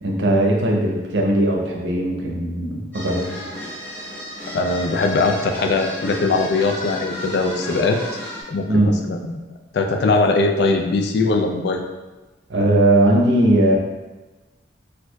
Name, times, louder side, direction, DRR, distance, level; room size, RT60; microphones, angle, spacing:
voice 1, 0.0-3.3 8.7-8.9 12.5-13.8, right 1 dB, 85° right, -1 dB, 0.7 m, -18 dB
sound 1, 2.9-8.4, left 1 dB, 10° left, 1.1 m, -33 dB
voice 2, 4.5-8.0 8.5-9.4 9.7-11.8, left 3 dB, 60° left, 3 dB, 0.4 m, -20 dB
4.4 x 2.5 x 2.3 m, 1.2 s
head